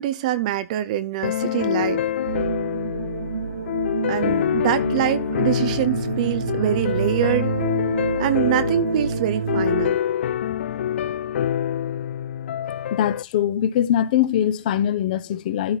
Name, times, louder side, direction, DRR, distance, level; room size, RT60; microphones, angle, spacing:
voice 1, 0.0-2.0 4.1-7.5 8.2-10.0, right 13 dB, 25° right, 0.5 m, -24 dB
sound 1, 1.2-13.2, left 10 dB, 50° left, 0.4 m, -26 dB
sound 2, 2.3-9.9, right 5 dB, 90° right, 0.8 m, -28 dB
voice 2, 12.9-15.8, left 10 dB, 35° left, 0.8 m, -22 dB
12.5 x 4.4 x 3.9 m
hypercardioid pair, 165°, 8 cm